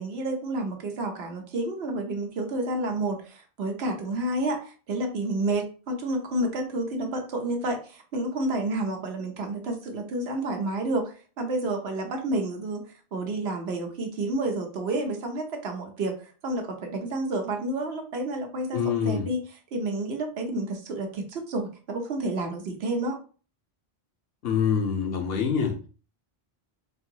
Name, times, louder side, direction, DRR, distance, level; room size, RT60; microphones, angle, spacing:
voice 1, 0.0-12.8 13.1-19.4 19.7-23.2, right 2 dB, 85° right, 3 dB, 1.0 m, -30 dB
voice 2, 18.7-19.3 24.4-25.8, left 6 dB, 70° left, 3 dB, 1.0 m, -25 dB
3.9 x 2.6 x 2.8 m, 0.37 s
omnidirectional pair, 1.0 m